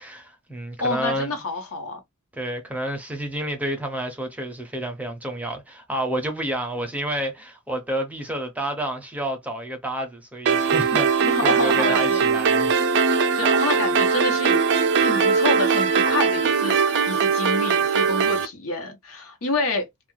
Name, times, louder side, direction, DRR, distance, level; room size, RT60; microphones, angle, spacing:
voice 1, 0.0-1.3 2.3-12.7, right 1 dB, 5° right, 0.5 m, -30 dB
voice 2, 0.8-2.0 11.2-12.4 13.3-19.9, left 2 dB, 70° left, 0.9 m, -28 dB
sound 1, 10.5-18.5, right 5 dB, 55° right, 0.4 m, -20 dB
2.3 x 2.2 x 3.1 m
head